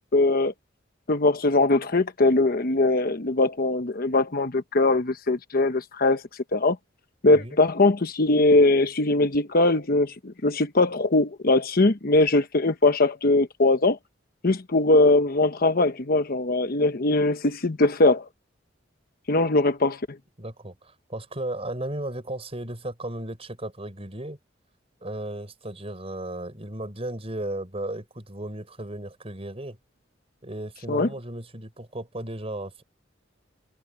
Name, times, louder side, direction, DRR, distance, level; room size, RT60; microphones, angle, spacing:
voice 1, 0.1-0.5 1.1-6.2 6.5-6.8 7.2-14.0 14.4-18.2 19.3-20.0 30.9-31.1, left 2 dB, 50° left, 1.0 m, -21 dB
voice 2, 20.4-24.4 25.0-29.8 30.4-32.8, right 1 dB, 30° right, 5.5 m, -35 dB
head